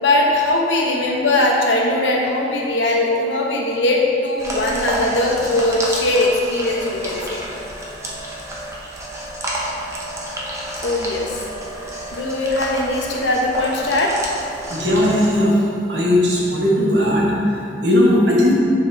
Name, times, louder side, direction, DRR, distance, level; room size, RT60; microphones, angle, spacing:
voice 1, 0.0-7.4 10.8-11.4 12.1-14.2, left 1 dB, 80° left, -1 dB, 0.9 m, -20 dB
sound 1, 4.4-15.4, right 1 dB, 15° right, 0.8 m, -30 dB
voice 2, 14.7-15.6 15.9-18.5, left 1 dB, 75° right, -4 dB, 1.3 m, -17 dB
8.5 x 3.6 x 3.3 m, 2.7 s
head